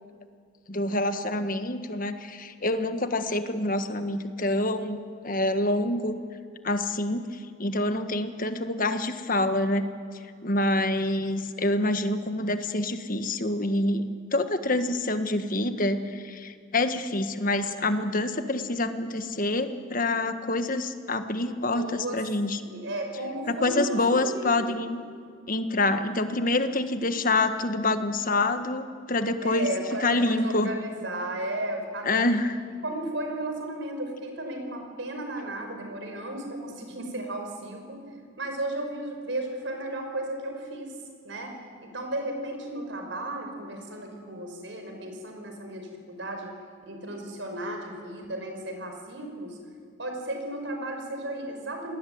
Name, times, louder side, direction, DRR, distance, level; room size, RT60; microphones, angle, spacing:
voice 1, 0.7-6.1 6.6-7.2 7.6-9.8 10.4-22.6 23.5-25.0 25.5-29.7 30.0-30.7 32.0-32.6, left 2 dB, 40° left, 9 dB, 1.6 m, -26 dB
voice 2, 21.7-22.2 22.6-24.9 29.4-32.3 32.8-38.0 38.4-40.9 41.2-41.5 41.8-46.6 46.9-49.6 50.0-52.0, right 1 dB, 60° right, 4 dB, 5.5 m, -34 dB
28.0 x 20.0 x 9.5 m, 2.1 s
head